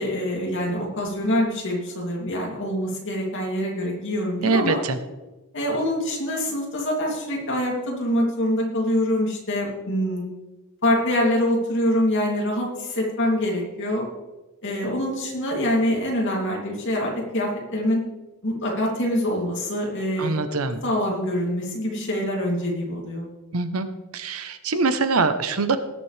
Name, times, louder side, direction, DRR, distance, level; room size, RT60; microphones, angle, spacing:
voice 1, 0.0-4.8 5.5-10.2 10.8-14.0 14.6-18.0 18.4-20.4 20.8-23.3, left 1 dB, 55° left, -2 dB, 2.9 m, -25 dB
voice 2, 4.4-5.0 20.2-20.8 23.5-23.9 24.1-25.8, right 3 dB, 80° right, 10 dB, 0.9 m, -23 dB
18.5 x 7.4 x 3.4 m, 1.1 s
head